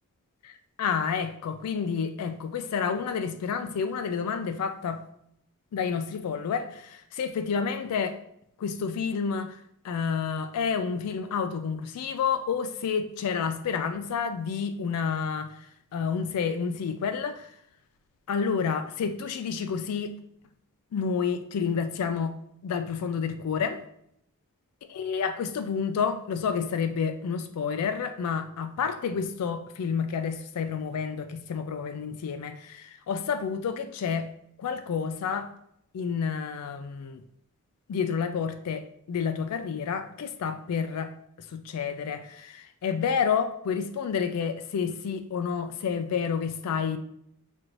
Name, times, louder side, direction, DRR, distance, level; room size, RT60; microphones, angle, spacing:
voice 1, 0.4-5.0 5.7-8.2 8.6-9.6 9.8-15.6 15.9-17.5 18.3-20.1 20.9-22.3 22.6-23.8 24.9-34.3 34.6-35.5 35.9-37.2 37.9-41.1 41.5-47.0, left 6 dB, 85° left, 8 dB, 0.4 m, -29 dB
6.2 x 2.6 x 2.9 m, 0.74 s
head